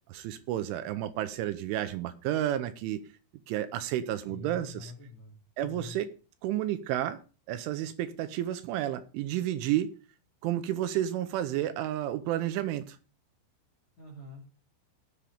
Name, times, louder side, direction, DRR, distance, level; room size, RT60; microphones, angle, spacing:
voice 1, 0.1-3.0 3.5-4.9 5.6-6.1 6.4-7.2 7.5-9.9 10.4-13.0, right 12 dB, 80° right, 3.0 m, -31 dB
voice 2, 4.3-5.3 5.6-6.0 14.0-14.4, left 4 dB, 40° left, 3.3 m, -45 dB
18.0 x 7.3 x 3.4 m
omnidirectional pair, 5.9 m